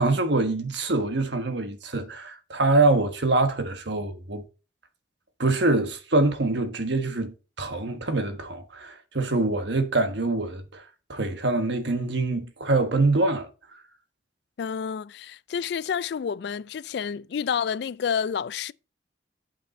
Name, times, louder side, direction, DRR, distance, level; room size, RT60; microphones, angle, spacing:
voice 1, 0.0-4.4 5.4-10.8 11.1-13.5, right 2 dB, 65° right, 1.3 m, -24 dB
voice 2, 14.6-18.7, left 7 dB, 60° left, 0.3 m, -29 dB
8.8 x 5.3 x 4.3 m
head